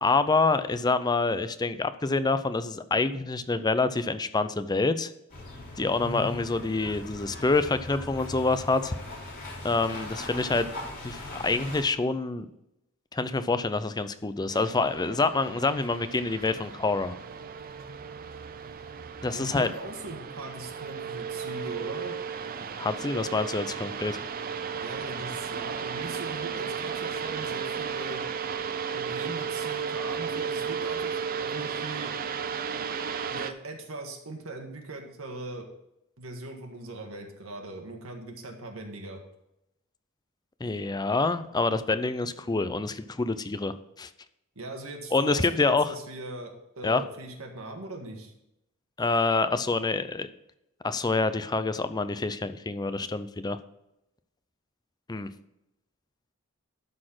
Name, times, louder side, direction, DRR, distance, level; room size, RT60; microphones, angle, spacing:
voice 1, 0.0-5.1 5.7-9.0 9.6-10.7 11.0-12.5 13.1-17.2 19.2-19.7 22.8-24.2 40.6-44.1 45.1-45.9 46.8-47.0 49.0-50.3 50.8-53.6 55.1-55.3, left 3 dB, 20° left, 11 dB, 0.5 m, -27 dB
sound 1, 5.3-11.8, left 2 dB, 45° left, 3.2 m, -40 dB
sound 2, 14.5-33.5, right 6 dB, 45° right, 0.6 m, -34 dB
voice 2, 19.3-22.2 24.8-28.2 28.9-31.1 31.4-32.1 33.3-35.6 36.2-39.2 44.5-48.3, right 2 dB, 80° right, 3 dB, 1.7 m, -40 dB
12.5 x 4.3 x 5.9 m, 0.86 s
head